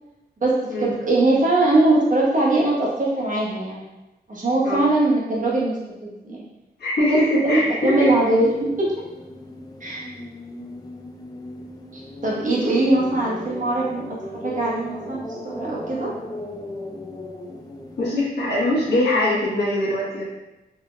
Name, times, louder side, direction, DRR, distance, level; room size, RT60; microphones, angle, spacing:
voice 1, 0.4-3.8 4.3-6.4 7.1-9.0 9.8-10.1 11.9-14.2 14.4-16.1, right 2 dB, 50° right, -5 dB, 1.0 m, -21 dB
voice 2, 6.8-8.1 18.0-20.2, left 1 dB, 85° left, -8 dB, 1.3 m, -22 dB
sound 1, 7.7-18.1, left 2 dB, 20° left, 0.4 m, -37 dB
3.5 x 3.1 x 2.2 m, 1.0 s
wide cardioid pair, 105°, 17 cm